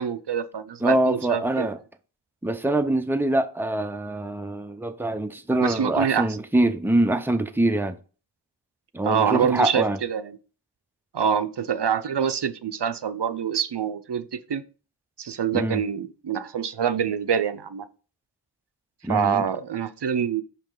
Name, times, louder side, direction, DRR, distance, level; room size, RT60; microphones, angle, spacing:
voice 1, 0.0-1.7 5.6-6.4 9.0-10.4 11.1-14.6 15.2-17.8 19.1-20.4, right 7 dB, 75° right, 0.5 m, -25 dB
voice 2, 0.8-1.8 2.4-7.9 8.9-10.0 15.5-15.8 19.0-19.4, right 1 dB, 5° right, 0.6 m, -24 dB
5.8 x 5.1 x 3.8 m
wide cardioid pair, 40°, 42 cm